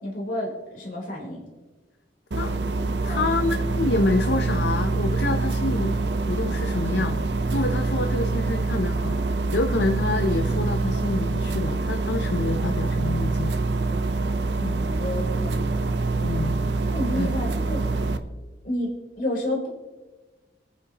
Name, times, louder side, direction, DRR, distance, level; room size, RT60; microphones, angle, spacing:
voice 1, 0.0-1.4 3.1-3.3 14.6-15.8 16.8-17.8 18.6-18.9 19.2-19.7, left 1 dB, 50° left, -2 dB, 3.9 m, -30 dB
sound 1, 2.3-18.2, right 3 dB, 70° right, 0.8 m, -25 dB
voice 2, 2.4-7.2 7.5-9.2 9.5-13.5 16.2-16.6 17.1-17.3, left 2 dB, 70° left, 6 dB, 0.7 m, -27 dB
24.5 x 9.5 x 2.9 m, 1.2 s
head